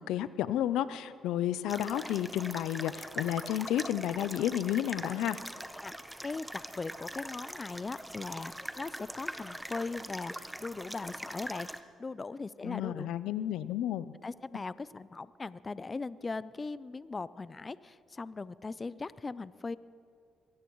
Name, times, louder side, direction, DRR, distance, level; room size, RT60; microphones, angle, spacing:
voice 1, 0.1-5.4 12.6-14.1, left 11 dB, 90° left, 15 dB, 0.4 m, -31 dB
sound 1, 1.7-11.8, right 1 dB, 5° right, 0.8 m, -42 dB
voice 2, 6.2-13.1 14.2-19.8, left 3 dB, 30° left, 17 dB, 0.4 m, -39 dB
22.5 x 17.0 x 3.1 m, 2.3 s
cardioid pair, 90°, 0 cm